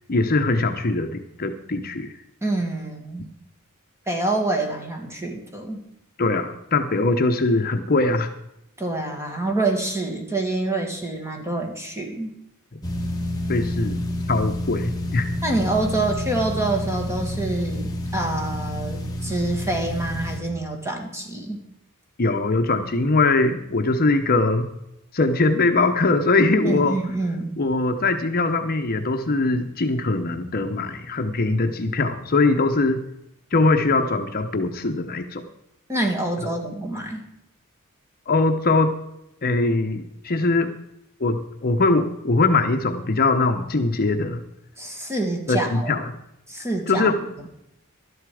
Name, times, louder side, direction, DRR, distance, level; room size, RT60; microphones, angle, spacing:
voice 1, 0.1-2.1 6.2-8.3 13.5-14.0 14.3-15.3 22.2-24.7 25.1-27.0 27.6-33.0 33.5-35.4 38.3-38.9 39.4-40.7 41.2-44.4 45.5-46.0 46.9-47.3, left 3 dB, 45° left, 6 dB, 0.9 m, -21 dB
voice 2, 2.4-3.3 4.1-5.8 8.8-12.4 15.4-21.6 26.6-27.5 35.9-37.3 44.8-45.9 46.5-47.1, right 2 dB, 15° right, 3 dB, 2.1 m, -26 dB
sound 1, 12.8-20.4, left 1 dB, 15° left, 1.9 m, -29 dB
12.5 x 11.5 x 4.9 m, 0.83 s
head